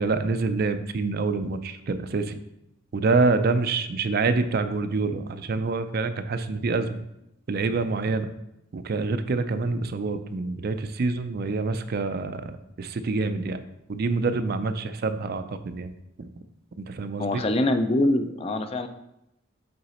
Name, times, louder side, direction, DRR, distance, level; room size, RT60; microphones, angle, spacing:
voice 1, 0.0-2.4 2.9-7.0 7.5-8.3 8.7-13.6 13.9-15.9 16.2-16.3 16.8-17.4, right 3 dB, 50° right, 10 dB, 0.4 m, -26 dB
voice 2, 17.2-18.9, left 1 dB, 30° left, 8 dB, 0.4 m, -24 dB
7.8 x 3.9 x 4.2 m, 0.84 s
head